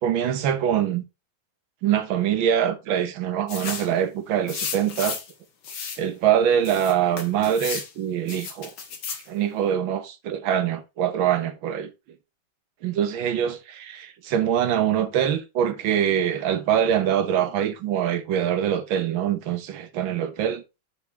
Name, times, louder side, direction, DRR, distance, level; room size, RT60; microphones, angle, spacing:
voice 1, 0.0-1.0 1.8-5.2 6.0-8.7 9.3-11.9 12.8-20.6, right 9 dB, 75° right, 1.8 m, -24 dB
sound 1, 3.5-3.9 4.5-5.3 5.6-6.0 6.7-7.9 8.3-9.3, left 6 dB, 60° left, 2.0 m, -33 dB
8.3 x 4.3 x 4.1 m
omnidirectional pair, 2.2 m